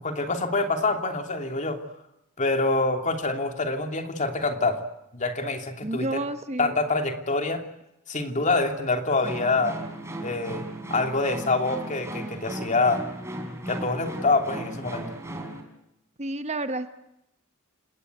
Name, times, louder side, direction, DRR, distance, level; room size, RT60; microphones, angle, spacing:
voice 1, 0.0-1.8 2.4-4.8 5.1-6.2 6.6-7.6 8.1-9.8 10.2-10.6 10.9-13.0 13.7-15.1, left 3 dB, 35° left, 5 dB, 3.0 m, -26 dB
voice 2, 5.8-6.8 16.2-16.9, right 2 dB, 30° right, 10 dB, 1.1 m, -30 dB
sound 1, 9.2-15.6, right 1 dB, 15° right, 4.2 m, -36 dB
29.5 x 18.0 x 9.3 m, 0.86 s
head